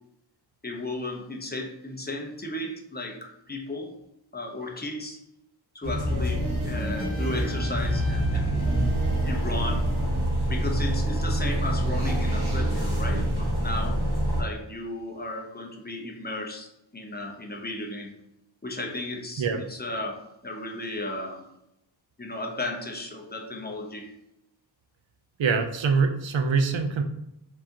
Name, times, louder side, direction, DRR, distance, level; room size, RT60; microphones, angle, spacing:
voice 1, 0.6-3.9 4.3-5.2 5.7-8.6 9.2-9.9 10.5-14.0 14.4-18.1 18.6-21.4 22.2-24.1, left 2 dB, 20° left, 1 dB, 0.8 m, -35 dB
sound 1, 5.8-14.4, right 1 dB, 60° right, 1.5 m, -26 dB
Trumpet, 7.0-9.8, left 2 dB, 40° left, 1.4 m, -46 dB
voice 2, 25.4-27.0, right 5 dB, 90° right, 6 dB, 0.7 m, -24 dB
4.8 x 3.9 x 2.8 m, 0.84 s
wide cardioid pair, 120°, 44 cm